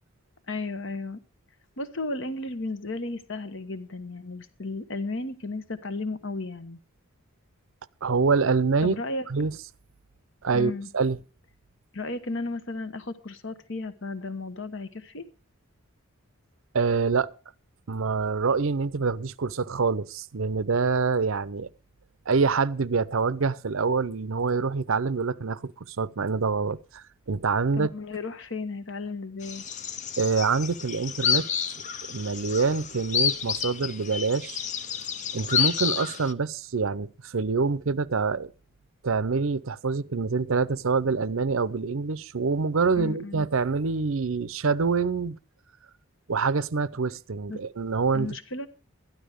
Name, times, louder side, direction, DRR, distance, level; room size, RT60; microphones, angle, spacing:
voice 1, 0.5-1.2 1.8-6.8 8.8-9.3 10.5-10.9 11.9-15.3 27.7-29.6 43.0-43.4 47.5-47.6 48.1-48.7, left 2 dB, 55° left, 1.2 m, -34 dB
voice 2, 8.0-9.0 9.3-9.6 10.4-11.2 16.7-17.3 17.9-21.7 22.3-27.9 30.2-31.5 32.1-34.6 35.3-38.5 39.0-45.4 46.3-48.4, right 4 dB, 65° right, 0.6 m, -26 dB
sound 1, 29.4-36.3, left 7 dB, 35° left, 0.6 m, -30 dB
13.0 x 11.5 x 5.0 m
head